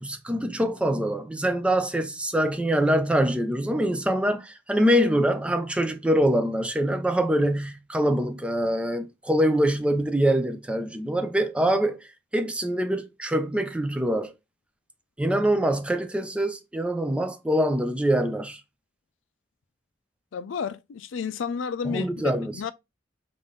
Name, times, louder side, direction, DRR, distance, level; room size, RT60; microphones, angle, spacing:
voice 1, 0.0-12.0 12.3-14.3 15.2-18.6 21.8-22.7, right 1 dB, 5° right, 0.3 m, -24 dB
voice 2, 20.3-22.1 22.4-22.7, left 6 dB, 85° left, 0.4 m, -31 dB
3.6 x 2.6 x 3.7 m
head